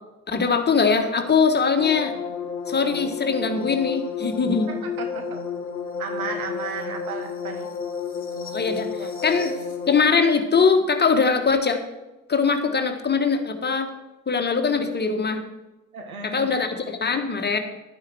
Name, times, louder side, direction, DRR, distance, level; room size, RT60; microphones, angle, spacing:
voice 1, 0.3-2.1 2.7-4.7 8.5-9.5 9.9-11.8 12.3-13.9 14.3-15.4 16.2-17.6, left 5 dB, 25° left, 6 dB, 1.5 m, -21 dB
sound 1, 1.8-10.0, left 6 dB, 90° left, 1.0 m, -31 dB
voice 2, 4.7-5.4 6.0-7.7 9.0-9.3 15.9-16.5, right 5 dB, 80° right, 5 dB, 1.5 m, -34 dB
11.5 x 9.2 x 4.7 m, 1.0 s
figure-of-eight pair, 55°, 42 cm